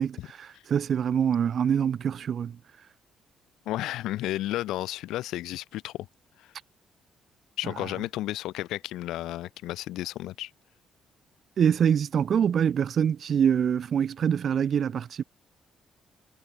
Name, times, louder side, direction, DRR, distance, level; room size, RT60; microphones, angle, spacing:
voice 1, 0.0-2.6 11.6-15.2, right 8 dB, 55° right, 2.0 m, -25 dB
voice 2, 3.7-6.1 6.4-6.5 7.6-10.5, left 15 dB, 90° left, 4.4 m, -32 dB
cardioid pair, 90°, 0 cm